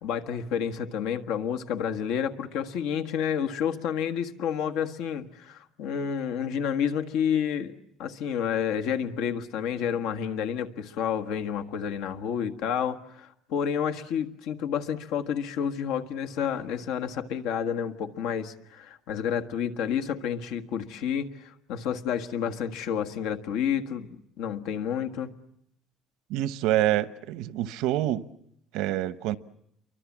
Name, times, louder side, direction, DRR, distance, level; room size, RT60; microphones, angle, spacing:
voice 1, 0.0-7.7 8.0-24.1 24.4-25.3, left 8 dB, 85° left, 1.6 m, -30 dB
voice 2, 26.3-28.2 28.7-29.4, right 14 dB, 85° right, 1.0 m, -26 dB
29.5 x 24.0 x 7.4 m
cardioid pair, 165°, 0 cm